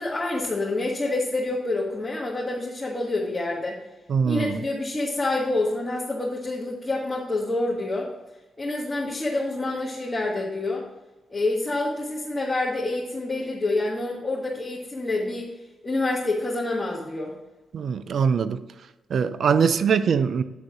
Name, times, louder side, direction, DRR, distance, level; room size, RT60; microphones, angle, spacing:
voice 1, 0.0-3.8 4.2-8.1 8.6-10.8 11.3-15.5 15.8-17.3, left 2 dB, 25° left, -4 dB, 1.6 m, -27 dB
voice 2, 4.1-4.6 17.7-18.6 19.1-20.4, right 6 dB, 65° right, 13 dB, 0.4 m, -22 dB
9.2 x 3.9 x 6.0 m, 1.1 s
supercardioid pair, 55°, 0 cm